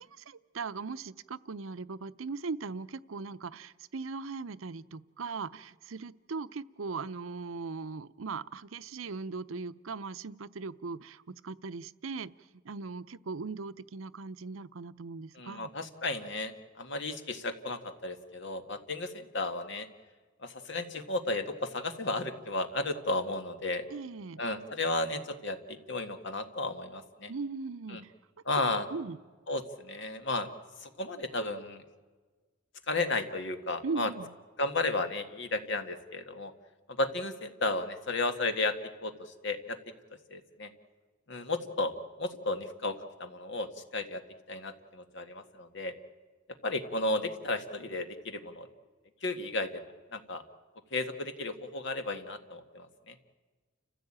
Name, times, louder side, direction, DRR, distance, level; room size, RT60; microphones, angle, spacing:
voice 1, 0.0-12.3 12.6-15.7 23.9-24.4 27.3-28.1 28.9-29.2 33.8-34.3, right 4 dB, 80° right, 15 dB, 0.7 m, -39 dB
voice 2, 15.3-19.9 20.4-23.8 24.4-27.3 27.9-28.0 28.4-28.9 29.5-30.5 30.8-31.8 32.9-34.1 34.6-36.5 36.9-38.7 39.0-39.8 40.3-40.7 41.3-41.9 42.2-44.2 44.5-45.9 46.6-48.7 49.2-50.4 50.9-53.1, left 2 dB, 60° left, 8 dB, 1.8 m, -33 dB
29.5 x 15.5 x 8.8 m, 1.4 s
head